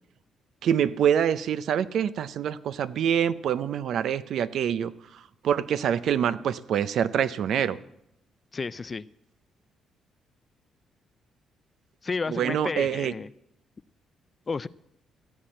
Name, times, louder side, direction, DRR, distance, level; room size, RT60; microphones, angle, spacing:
voice 1, 0.6-4.9 5.4-7.8 12.3-13.1, right 9 dB, 70° right, 15 dB, 0.5 m, -25 dB
voice 2, 8.5-9.1 12.0-13.3 14.5-14.7, left 4 dB, 35° left, 17 dB, 0.4 m, -31 dB
15.5 x 7.4 x 7.8 m, 0.82 s
cardioid pair, 90°, 0 cm